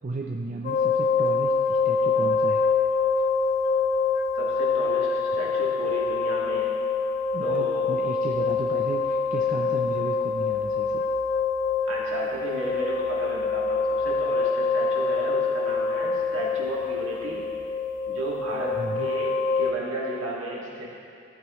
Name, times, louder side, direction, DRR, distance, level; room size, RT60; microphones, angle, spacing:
voice 1, 0.0-2.6 7.3-11.1 18.8-19.1, right 2 dB, 40° right, 1 dB, 0.5 m, -34 dB
sound 1, 0.6-19.7, left 4 dB, 40° left, 0.6 m, -25 dB
voice 2, 4.4-6.7 7.4-8.0 11.9-17.5 18.1-18.7 19.0-20.9, right 1 dB, 70° right, -4 dB, 2.1 m, -33 dB
14.5 x 9.0 x 3.1 m, 2.4 s
head